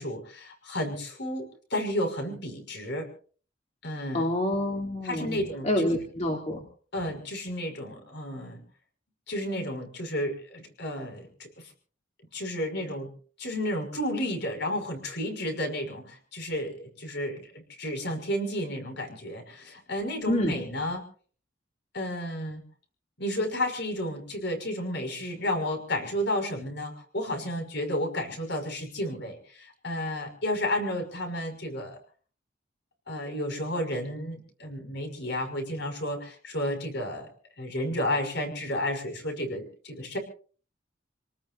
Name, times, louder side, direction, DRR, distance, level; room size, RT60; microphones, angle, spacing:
voice 1, 0.0-3.1 3.8-4.3 5.0-5.9 6.3-6.4 6.9-8.6 9.3-11.3 12.3-13.1 13.4-21.0 21.9-22.6 23.2-32.0 33.1-37.3 37.6-40.2, left 1 dB, 65° left, 4 dB, 5.9 m, -32 dB
voice 2, 4.1-6.6 20.3-20.6, left 1 dB, 35° left, 0 dB, 2.8 m, -27 dB
28.5 x 19.0 x 2.6 m, 0.42 s
head